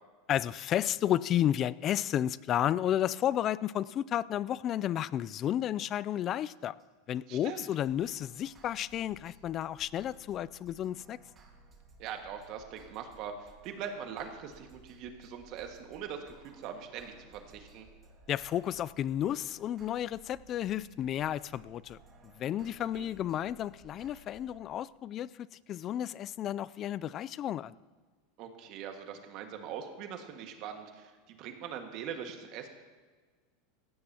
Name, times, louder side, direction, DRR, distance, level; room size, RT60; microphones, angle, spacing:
voice 1, 0.3-6.7 7.1-11.2 18.3-22.0 22.4-27.8, left 11 dB, 40° left, 20 dB, 0.4 m, -32 dB
sound 1, 5.4-5.8 6.1-6.2 6.4-6.5 6.8-6.9 7.1-7.2 7.5-7.6 7.8-24.7, right 3 dB, 30° right, 3.2 m, -58 dB
voice 2, 7.3-7.7 12.0-17.9 22.7-23.1 28.4-32.7, right 8 dB, 55° right, 4 dB, 1.8 m, -42 dB
18.0 x 16.0 x 2.9 m, 1.5 s
supercardioid pair, 115°, 0 cm